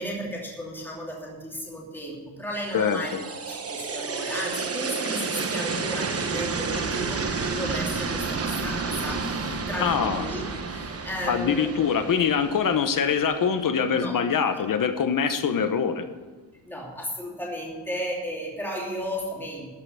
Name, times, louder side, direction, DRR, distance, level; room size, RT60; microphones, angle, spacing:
voice 1, 0.0-3.1 3.5-11.9 13.9-14.1 16.6-19.7, equal, 5° left, -4 dB, 2.8 m, -34 dB
sound 1, 2.6-13.6, right 4 dB, 30° right, 1.0 m, -31 dB
voice 2, 9.8-10.3 11.3-16.0, left 6 dB, 45° left, 9 dB, 1.0 m, -24 dB
13.0 x 5.8 x 7.9 m, 1.3 s
cardioid pair, 145°, 46 cm